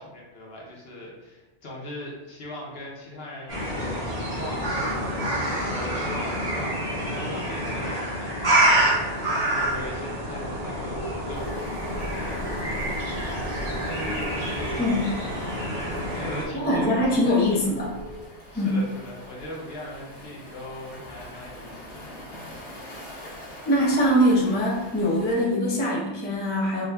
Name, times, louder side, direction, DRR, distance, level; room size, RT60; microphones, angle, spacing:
voice 1, 0.0-4.8 5.3-8.4 9.2-11.6 12.1-13.0 13.3-15.2 16.1-17.8 18.5-22.1, left 1 dB, 60° left, -3 dB, 1.0 m, -40 dB
sound 1, 3.5-16.4, right 1 dB, 60° right, 1.9 m, -27 dB
sound 2, 9.5-18.2, equal, 10° right, 1.1 m, -40 dB
Waves surf, 11.3-25.5, left 1 dB, 75° left, 1.3 m, -45 dB
voice 2, 14.8-15.1 16.5-18.0 18.5-18.8 23.7-26.9, equal, 10° left, -5 dB, 0.5 m, -22 dB
4.8 x 2.4 x 2.2 m, 1.0 s
omnidirectional pair, 1.2 m